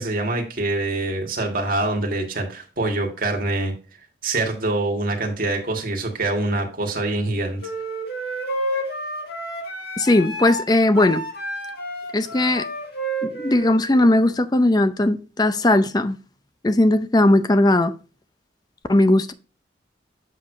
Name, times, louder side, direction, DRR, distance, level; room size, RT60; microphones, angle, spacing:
voice 1, 0.0-3.7 4.2-7.6, right 2 dB, 50° right, 1.8 m, -25 dB
sound 1, 7.6-14.1, right 1 dB, 60° left, 1.9 m, -30 dB
voice 2, 10.0-11.2 12.1-12.7 13.2-16.2 16.6-17.9 18.9-19.3, left 1 dB, 20° left, 0.5 m, -18 dB
7.4 x 6.5 x 2.6 m
head